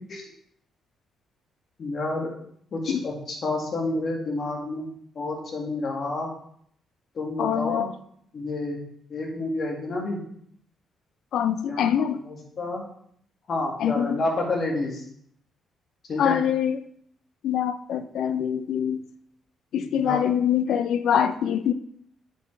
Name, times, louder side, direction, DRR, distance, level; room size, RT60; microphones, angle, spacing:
voice 1, 1.8-2.3 2.7-4.9 5.2-6.3 7.2-7.9 8.3-8.8 9.1-10.2 11.7-12.8 13.5-15.0 16.1-16.4 19.9-20.2, left 2 dB, 50° left, 0 dB, 2.0 m, -29 dB
voice 2, 7.4-7.9 11.3-12.2 13.8-14.2 16.2-16.8 17.4-19.0 19.7-21.7, left 9 dB, 75° left, 12 dB, 0.5 m, -24 dB
7.5 x 6.1 x 3.3 m, 0.66 s
cardioid pair, 90°, 0 cm